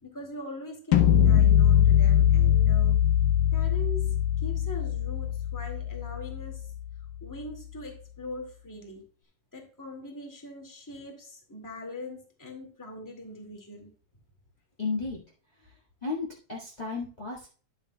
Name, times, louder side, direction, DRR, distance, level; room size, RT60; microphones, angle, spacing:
voice 1, 0.0-3.0 3.5-6.7 7.2-9.0 9.5-13.9, left 1 dB, 10° left, 2 dB, 1.0 m, -41 dB
sound 1, 0.9-6.9, left 10 dB, 85° left, 2.6 m, -22 dB
voice 2, 14.8-15.2 16.0-17.5, left 4 dB, 30° left, -6 dB, 0.7 m, -33 dB
10.5 x 8.7 x 2.2 m, 0.40 s
omnidirectional pair, 4.0 m